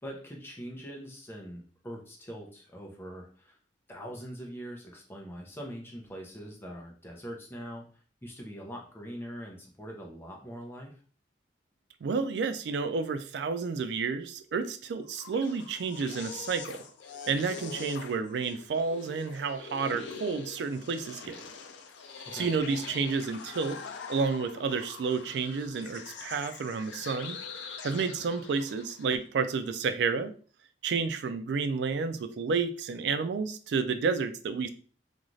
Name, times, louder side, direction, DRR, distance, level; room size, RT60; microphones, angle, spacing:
voice 1, 0.0-3.6 3.9-7.9 8.2-10.9 22.3-22.5, equal, 15° left, 0 dB, 0.6 m, -42 dB
voice 2, 12.0-16.8 17.3-21.4 22.3-23.8 24.1-27.4 27.8-30.3 30.8-34.7, right 5 dB, 70° right, 10 dB, 0.3 m, -30 dB
sound 1, 15.0-29.2, left 5 dB, 85° left, 0.4 m, -44 dB
2.5 x 2.4 x 3.1 m, 0.42 s
head